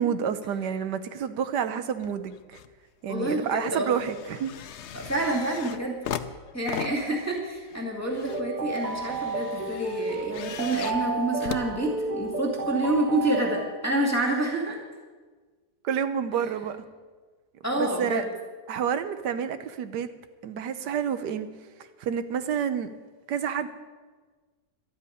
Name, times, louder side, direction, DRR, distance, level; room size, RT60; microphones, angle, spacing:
voice 1, 0.0-2.6 3.0-4.5 15.8-16.8 17.8-18.2 18.7-20.1 20.4-21.5 22.0-22.9 23.3-23.7, right 8 dB, 90° right, 11 dB, 1.5 m, -29 dB
sound 1, 2.0-2.7 3.1-12.5 13.2-13.3, left 9 dB, 60° left, 0.7 m, -39 dB
voice 2, 3.1-4.0 4.9-6.0 6.5-14.8 17.6-18.3, right 1 dB, 10° left, -3 dB, 2.2 m, -28 dB
sound 2, 8.3-14.0, right 3 dB, 45° right, 0.6 m, -32 dB
12.0 x 8.1 x 9.8 m, 1.4 s
omnidirectional pair, 1.7 m